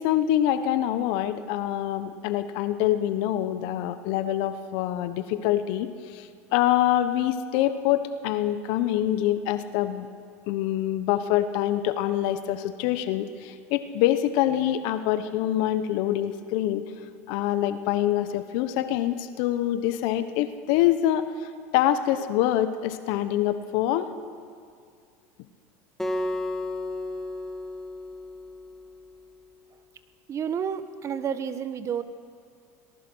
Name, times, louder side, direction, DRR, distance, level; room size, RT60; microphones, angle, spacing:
voice 1, 0.0-10.1 10.5-16.8 17.3-24.1, left 12 dB, 65° left, 11 dB, 1.1 m, -25 dB
Acoustic guitar, 26.0-29.2, left 1 dB, 5° left, 2.1 m, -33 dB
voice 2, 30.3-32.0, right 7 dB, 35° right, 12 dB, 1.2 m, -30 dB
24.0 x 19.0 x 6.3 m, 2.2 s
supercardioid pair, 100°, 8 cm